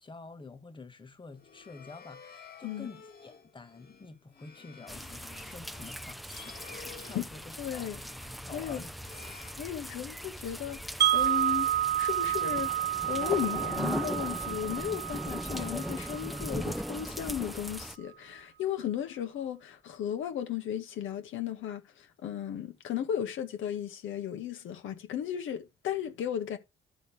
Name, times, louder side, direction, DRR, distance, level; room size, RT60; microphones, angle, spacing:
voice 1, 0.0-7.9 8.2-8.9, left 3 dB, 25° left, 1.9 m, -48 dB
sound 1, 1.2-10.3, left 6 dB, 50° left, 2.5 m, -53 dB
sound 2, 4.9-18.0, equal, ahead, 0.6 m, -39 dB
voice 2, 6.8-7.2 7.6-8.0 8.5-8.8 9.6-11.7 12.0-12.7 13.1-26.6, left 10 dB, 80° left, 2.0 m, -35 dB
Wind chime, 11.0-17.0, right 12 dB, 55° right, 1.5 m, -30 dB
12.0 x 7.0 x 3.6 m
cardioid pair, 90°, 20 cm